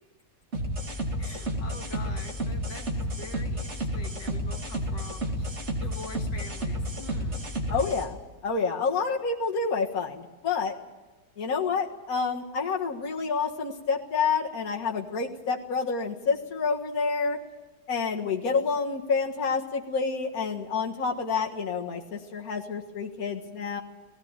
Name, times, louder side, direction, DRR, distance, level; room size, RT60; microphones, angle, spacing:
sound 1, 0.5-8.0, equal, 40° right, 2.9 m, -31 dB
voice 1, 1.2-7.4, left 3 dB, 80° left, 3 dB, 2.4 m, -45 dB
voice 2, 7.7-10.7 11.4-17.4 17.9-23.8, left 5 dB, 55° left, 0 dB, 2.1 m, -28 dB
18.0 x 17.0 x 9.0 m, 1.1 s
omnidirectional pair, 1.9 m